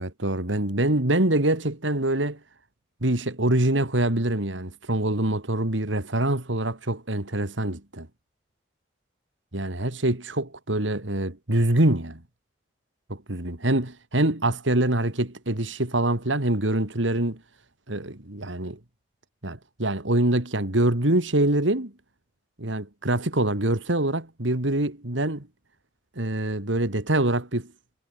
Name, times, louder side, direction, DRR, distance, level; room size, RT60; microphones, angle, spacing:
voice 1, 0.0-2.4 3.0-8.1 9.5-12.2 13.1-17.4 17.9-18.8 19.4-21.9 22.6-25.5 26.2-27.7, right 1 dB, 85° right, 2.9 m, -25 dB
head